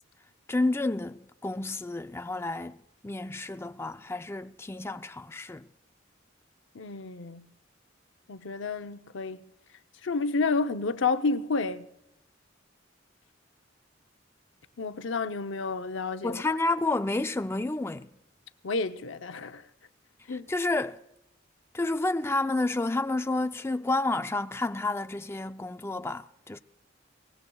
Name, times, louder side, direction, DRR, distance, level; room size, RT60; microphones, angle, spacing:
voice 1, 0.5-2.8 3.0-5.7 16.2-18.1 20.3-21.0 21.7-26.6, left 2 dB, 15° left, 0.4 m, -30 dB
voice 2, 6.7-7.4 8.3-9.4 10.0-11.9 14.8-16.4 18.6-19.6 20.3-20.4, left 4 dB, 75° left, 0.7 m, -30 dB
23.0 x 19.0 x 2.3 m
head